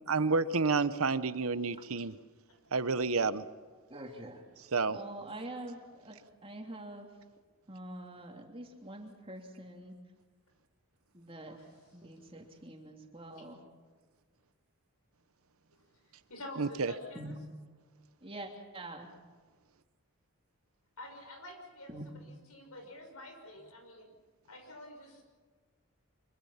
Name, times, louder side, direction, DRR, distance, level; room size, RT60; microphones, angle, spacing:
voice 1, 0.1-2.2 2.7-3.5 4.7-5.0 16.6-16.9, right 4 dB, 75° right, 13 dB, 1.0 m, -29 dB
voice 2, 3.9-4.4 4.9-7.1 7.7-9.9 11.1-11.6 11.9-13.6 17.1-17.3 18.2-19.1 21.9-22.0, right 1 dB, 25° right, 1 dB, 3.1 m, -45 dB
voice 3, 16.3-17.3 21.0-21.9 22.5-24.1 24.5-25.2, left 1 dB, 85° left, 4 dB, 6.1 m, -47 dB
25.0 x 24.0 x 5.8 m, 1.5 s
head